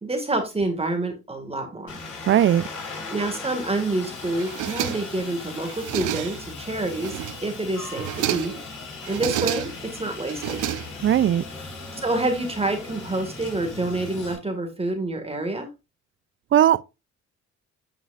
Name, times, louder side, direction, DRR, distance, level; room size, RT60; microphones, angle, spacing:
voice 1, 0.0-2.0 3.1-8.6 9.1-10.6 11.9-15.7, right 2 dB, 20° right, 1.8 m, -27 dB
Aircraft, 1.9-14.3, left 3 dB, 85° left, 4.3 m, -38 dB
voice 2, 2.3-2.6 11.0-11.4 16.5-16.8, right 11 dB, 40° right, 0.4 m, -18 dB
sound 1, 4.4-5.3 5.6-6.5 6.9-7.5 7.9-8.7 9.0-9.9 10.3-11.3, right 12 dB, 80° right, 0.8 m, -30 dB
8.6 x 5.6 x 2.4 m
cardioid pair, 90°, 30 cm